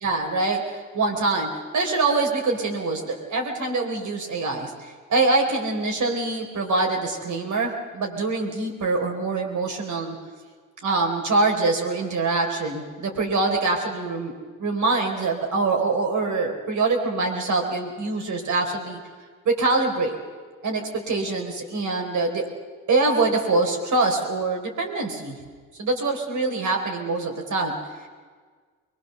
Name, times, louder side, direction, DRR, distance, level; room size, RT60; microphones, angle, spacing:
voice 1, 0.0-10.2 10.8-19.0 19.4-20.2 20.6-22.5 22.9-25.4 25.8-28.1, right 3 dB, 60° right, 2 dB, 4.3 m, -24 dB
23.5 x 20.0 x 6.9 m, 1.5 s
hypercardioid pair, 55°, 34 cm